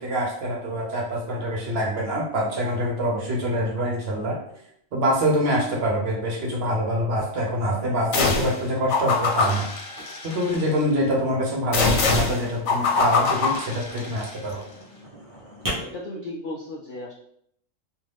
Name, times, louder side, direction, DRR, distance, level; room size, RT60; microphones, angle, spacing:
voice 1, 0.0-4.4 4.9-9.7 10.2-14.6, equal, 60° right, 0 dB, 0.8 m, -25 dB
sound 1, 0.7-2.2 2.4-3.8 4.1-4.7 5.0-5.3 5.6-5.7 6.0-6.1 6.5-11.0 11.4-13.6 14.2-15.7, equal, 20° right, 0.6 m, -41 dB
sound 2, 8.1-8.6 8.9-10.7 11.7-14.3, left 4 dB, 85° left, 1.1 m, -24 dB
voice 2, 15.6-17.1, left 1 dB, 70° left, -2 dB, 0.4 m, -35 dB
2.5 x 2.4 x 3.2 m, 0.69 s
omnidirectional pair, 1.3 m